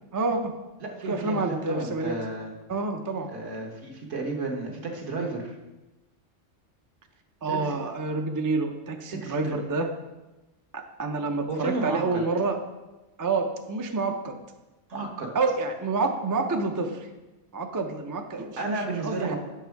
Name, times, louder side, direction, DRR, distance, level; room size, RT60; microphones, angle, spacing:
voice 1, 0.1-0.5 1.1-2.2 2.7-3.3 7.4-9.9 10.7-12.6 13.2-14.3 15.3-17.1 17.5-19.3, right 3 dB, 30° right, 4 dB, 0.3 m, -28 dB
voice 2, 0.8-2.5 3.3-5.6 7.5-7.8 9.1-9.5 11.5-12.2 14.9-15.3 18.6-19.4, right 3 dB, 70° right, 1 dB, 1.6 m, -32 dB
7.7 x 6.2 x 4.6 m, 1.1 s
omnidirectional pair, 1.3 m